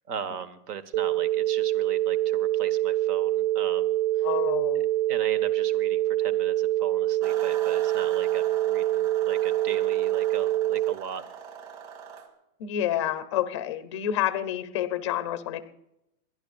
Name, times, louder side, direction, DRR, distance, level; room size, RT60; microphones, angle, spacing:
voice 1, 0.1-4.3 5.1-11.2, right 7 dB, 80° right, 13 dB, 1.4 m, -38 dB
sound 1, 0.9-10.9, right 14 dB, 65° right, 0.7 m, -25 dB
voice 2, 4.2-4.8 12.6-15.6, left 11 dB, 20° left, 11 dB, 0.4 m, -28 dB
sound 2, 7.2-12.3, right 7 dB, 30° right, 2.1 m, -42 dB
28.5 x 11.0 x 2.4 m, 0.84 s
supercardioid pair, 170°, 46 cm